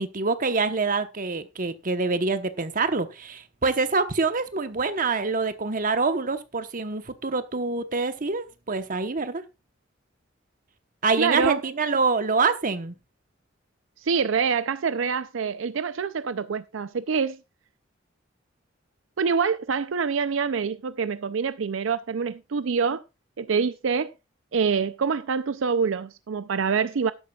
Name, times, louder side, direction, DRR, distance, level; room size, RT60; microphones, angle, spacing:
voice 1, 0.0-9.4 11.0-12.9, right 4 dB, 45° right, 1.1 m, -26 dB
voice 2, 11.2-11.6 14.0-17.4 19.2-23.0 23.4-24.1 24.5-27.1, right 5 dB, 75° right, 0.5 m, -26 dB
13.0 x 11.0 x 2.4 m
head